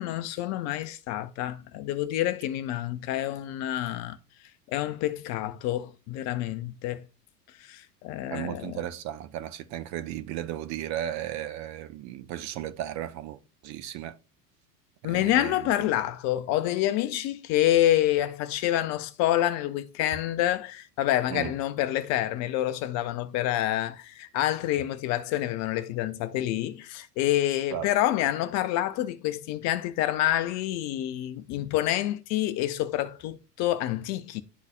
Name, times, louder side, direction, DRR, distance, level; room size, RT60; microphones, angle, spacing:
voice 1, 0.0-4.2 4.7-7.0 7.6-8.8 15.0-34.4, left 13 dB, 35° left, 0.5 m, -27 dB
voice 2, 8.3-14.2 15.0-15.9 21.3-21.5 27.7-27.9, right 12 dB, 35° right, 0.6 m, -35 dB
11.0 x 4.0 x 2.4 m
figure-of-eight pair, 80°, 49 cm